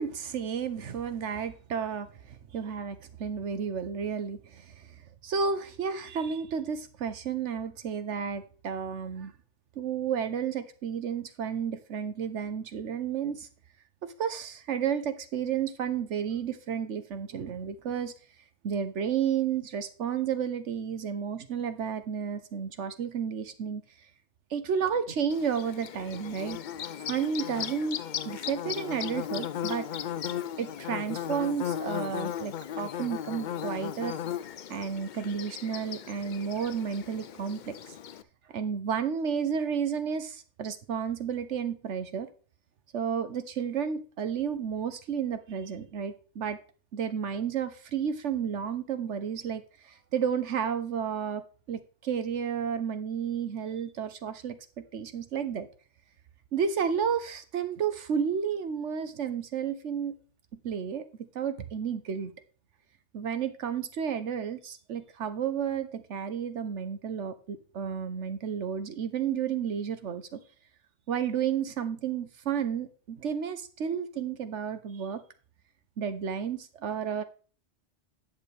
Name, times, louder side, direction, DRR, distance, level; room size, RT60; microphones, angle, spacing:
voice 1, 0.0-4.9 5.2-9.3 9.8-13.5 14.0-18.1 18.6-23.8 24.5-26.6 27.1-29.9 30.6-34.1 34.7-37.8 38.5-42.3 42.9-46.6 46.9-55.7 56.5-60.2 60.6-61.0 61.3-62.3 63.1-70.4 71.1-75.2 76.0-77.2, right 7 dB, 80° right, 1.3 m, -32 dB
Bird / Buzz, 25.3-38.2, left 9 dB, 60° left, 0.5 m, -36 dB
10.5 x 6.7 x 3.4 m
omnidirectional pair, 1.2 m